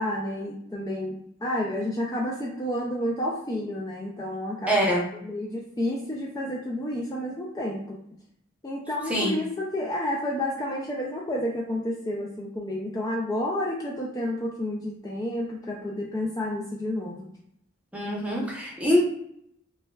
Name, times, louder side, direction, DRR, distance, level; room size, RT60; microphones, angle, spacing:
voice 1, 0.0-4.8 5.1-8.0 8.6-17.3, left 1 dB, 20° left, -3 dB, 0.4 m, -30 dB
voice 2, 4.7-5.0 9.1-9.3 17.9-19.0, equal, 5° right, -3 dB, 0.7 m, -24 dB
5.4 x 2.2 x 2.3 m, 0.74 s
head